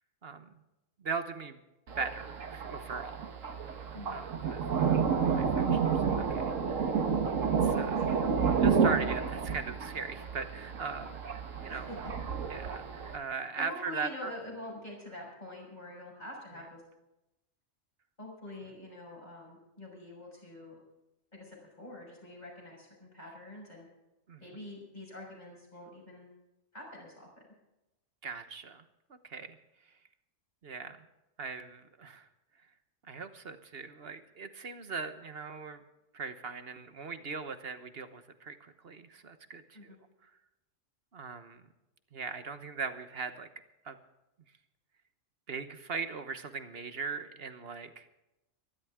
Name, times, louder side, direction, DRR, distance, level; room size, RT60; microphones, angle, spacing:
voice 1, 1.0-1.6 2.0-3.3 3.6-3.8 4.1-4.6 5.3-6.4 7.6-8.0 8.6-11.3 11.6-11.9 12.5-12.8 13.1-14.3 24.3-24.4 28.2-28.8 29.2-29.6 30.6-31.0 31.4-32.3 33.1-35.8 36.1-39.9 41.1-41.6 42.1-43.5 43.8-44.0 45.5-48.1, right 5 dB, 50° right, 9 dB, 1.3 m, -39 dB
Thunder, 1.9-13.2, right 6 dB, 80° right, 1.7 m, -30 dB
voice 2, 3.9-4.2 7.8-8.6 11.7-12.0 13.6-16.8 18.2-20.8 21.3-23.9 24.4-26.3 26.7-27.3 39.7-40.0, left 1 dB, 35° left, -1 dB, 6.4 m, -46 dB
24.5 x 12.0 x 3.7 m, 0.95 s
omnidirectional pair, 1.3 m